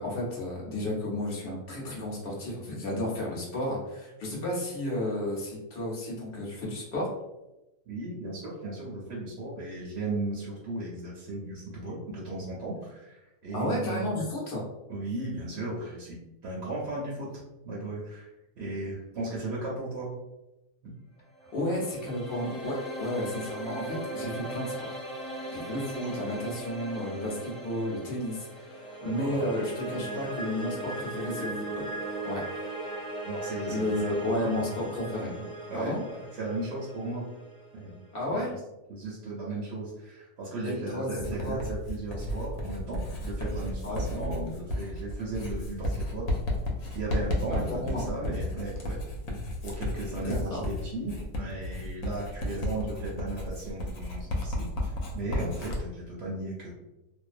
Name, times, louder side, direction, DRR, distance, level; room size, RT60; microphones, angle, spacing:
voice 1, 0.0-7.1 13.5-14.6 21.5-25.0 25.5-31.9 32.2-33.0 33.7-35.3 35.7-36.0 38.1-38.5 40.6-41.6 43.8-44.0 47.5-48.0 50.2-50.6, left 1 dB, 50° left, -3 dB, 0.8 m, -32 dB
voice 2, 7.9-14.2 14.9-16.2 16.4-17.3 17.6-18.3 18.6-20.1 29.0-29.5 33.2-34.7 35.2-37.2 37.7-37.9 38.3-38.6 38.9-46.3 46.9-49.0 49.6-56.7, right 2 dB, 65° right, -5 dB, 0.7 m, -36 dB
sound 1, 21.3-38.4, right 1 dB, 20° right, 0.7 m, -38 dB
Writing, 41.2-55.8, left 1 dB, 70° left, 1.0 m, -33 dB
2.4 x 2.0 x 2.4 m, 0.97 s
omnidirectional pair, 1.6 m